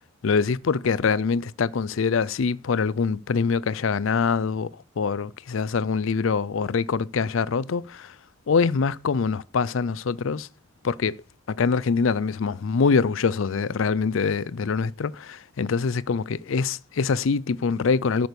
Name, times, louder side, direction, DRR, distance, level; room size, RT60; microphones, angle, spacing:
voice 1, 0.2-8.2 8.5-10.5 10.8-11.2 11.5-18.3, left 5 dB, 70° left, 0.5 m, -24 dB
12.5 x 6.1 x 6.8 m
head